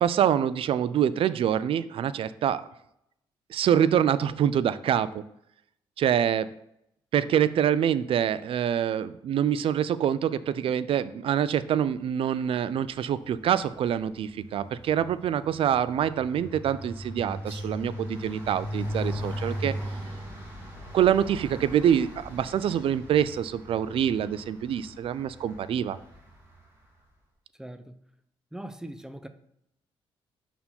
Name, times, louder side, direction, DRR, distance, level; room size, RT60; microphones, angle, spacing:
voice 1, 0.0-2.7 3.5-5.2 6.0-6.5 7.1-19.7 20.9-26.0, right 9 dB, 60° right, 0.4 m, -25 dB
sound 1, 12.8-13.2 13.4-26.6, equal, 20° right, 2.5 m, -38 dB
voice 2, 27.6-28.0 28.5-29.3, right 1 dB, 5° right, 0.6 m, -40 dB
5.4 x 4.4 x 4.3 m
supercardioid pair, 65°, 10 cm